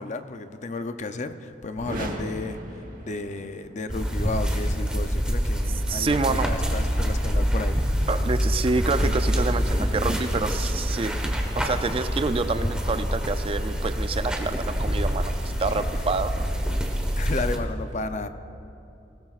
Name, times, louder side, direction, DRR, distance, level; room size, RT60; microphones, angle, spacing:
voice 1, 0.0-8.0 15.6-15.8 17.1-18.3, left 3 dB, 40° left, 9 dB, 0.5 m, -33 dB
sound 1, 1.7-3.7, right 1 dB, 50° right, 1.1 m, -36 dB
sound 2, 3.9-17.6, equal, 5° right, 1.2 m, -26 dB
voice 2, 5.9-6.5 8.1-15.3 15.6-16.8, right 3 dB, 30° right, 10 dB, 0.4 m, -27 dB
20.0 x 17.0 x 2.4 m, 2.8 s
head